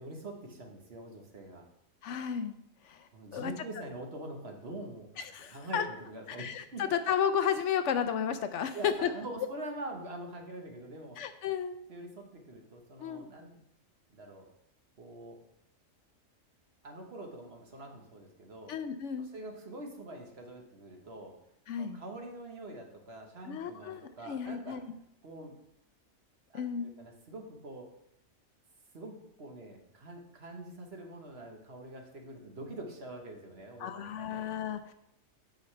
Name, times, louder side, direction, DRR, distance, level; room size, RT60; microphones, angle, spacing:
voice 1, 0.0-1.6 3.1-5.2 5.5-6.8 8.7-11.2 11.9-13.6 14.1-14.5 15.0-15.4 16.8-18.7 19.2-21.3 21.8-24.8 25.2-25.6 26.5-27.9 28.9-34.5, right 1 dB, 55° right, 2 dB, 1.4 m, -45 dB
voice 2, 2.0-2.6 2.8-3.5 5.2-5.8 6.3-9.1 11.2-11.7 13.0-13.3 18.7-19.3 21.7-22.0 23.4-24.8 26.5-26.9 33.8-34.9, left 8 dB, 70° left, 10 dB, 0.9 m, -33 dB
8.9 x 6.2 x 3.2 m, 0.77 s
omnidirectional pair, 1.3 m